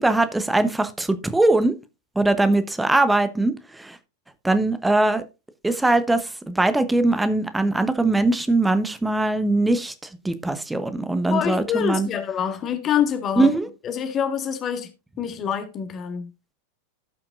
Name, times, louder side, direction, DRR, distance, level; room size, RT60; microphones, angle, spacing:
voice 1, 0.0-1.7 2.2-4.0 4.4-5.2 5.6-9.9 10.2-12.1 13.4-13.7, right 2 dB, 5° right, 1.0 m, -21 dB
voice 2, 11.3-13.5 13.8-14.9 15.2-16.3, left 8 dB, 30° left, 1.7 m, -26 dB
16.5 x 5.8 x 2.6 m
figure-of-eight pair, 90°, 0 cm